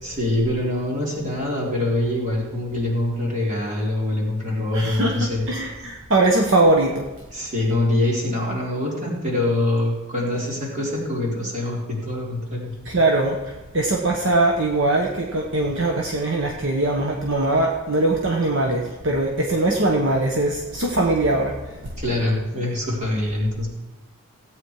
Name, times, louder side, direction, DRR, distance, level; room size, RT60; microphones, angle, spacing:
voice 1, 0.0-5.4 7.3-12.7 22.0-23.7, left 1 dB, 35° right, -4 dB, 4.2 m, -24 dB
voice 2, 4.7-7.1 12.8-21.9, right 2 dB, 60° right, 1 dB, 1.2 m, -21 dB
17.0 x 9.0 x 4.8 m, 1.1 s
head